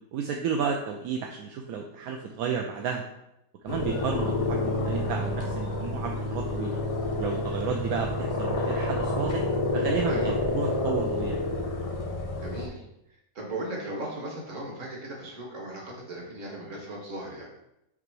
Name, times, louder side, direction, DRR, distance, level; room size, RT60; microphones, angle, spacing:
voice 1, 0.1-3.0 3.6-6.8 7.2-9.4 9.7-11.4, right 6 dB, 75° right, 2 dB, 1.0 m, -32 dB
sound 1, 3.7-12.7, left 2 dB, 65° left, 0.3 m, -29 dB
voice 2, 12.4-12.8 13.4-17.5, right 1 dB, 50° right, -2 dB, 1.8 m, -37 dB
5.9 x 3.4 x 4.7 m, 0.84 s
omnidirectional pair, 1.7 m